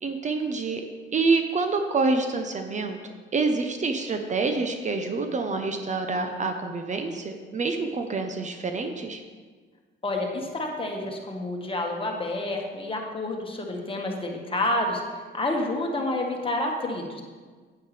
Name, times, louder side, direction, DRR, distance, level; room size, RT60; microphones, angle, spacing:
voice 1, 0.0-0.8 1.1-3.0 3.3-9.2, right 3 dB, 35° right, 6 dB, 0.8 m, -27 dB
voice 2, 10.0-15.0 15.3-17.2, left 2 dB, 25° left, 1 dB, 1.5 m, -29 dB
9.2 x 8.6 x 3.3 m, 1.5 s
cardioid pair, 90°, 20 cm